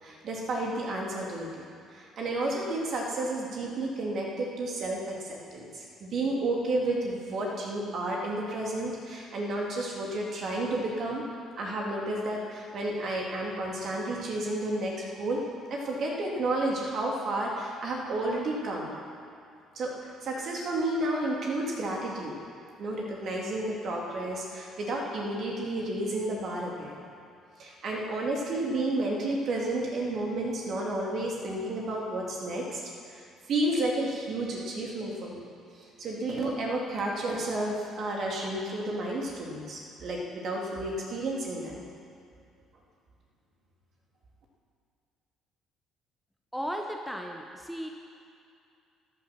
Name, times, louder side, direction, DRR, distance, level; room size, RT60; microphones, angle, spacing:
voice 1, 0.0-1.5 1.9-11.2 11.6-15.4 15.7-18.9 19.7-22.3 22.8-27.0 27.6-32.8 33.1-33.2 33.5-35.4 35.7-41.8, right 2 dB, 50° right, -2 dB, 2.9 m, -31 dB
voice 2, 46.5-47.9, equal, ahead, 2 dB, 1.2 m, -35 dB
13.0 x 10.0 x 6.0 m, 2.4 s
figure-of-eight pair, 50°, 0 cm